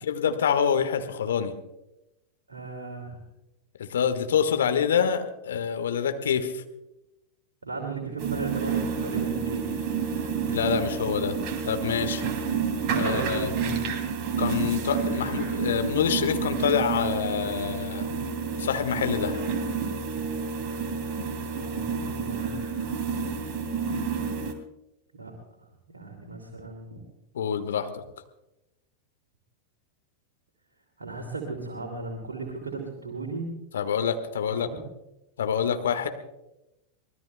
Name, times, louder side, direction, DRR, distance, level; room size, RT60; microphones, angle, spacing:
voice 1, 0.0-1.5 3.8-6.6 10.5-11.4 11.6-12.3 12.9-13.5 14.4-18.1 18.6-19.4 27.3-28.0 33.7-34.7 35.4-36.1, left 7 dB, 65° left, 8 dB, 1.5 m, -26 dB
voice 2, 2.5-3.2 7.6-9.8 13.0-13.8 21.4-22.8 25.1-25.3 25.9-27.0 31.0-33.5 34.5-34.8, right 3 dB, 75° right, 1 dB, 2.5 m, -36 dB
sound 1, 8.2-24.5, right 5 dB, 40° right, 2.7 m, -29 dB
24.5 x 20.0 x 2.2 m, 0.93 s
figure-of-eight pair, 90°, 0 cm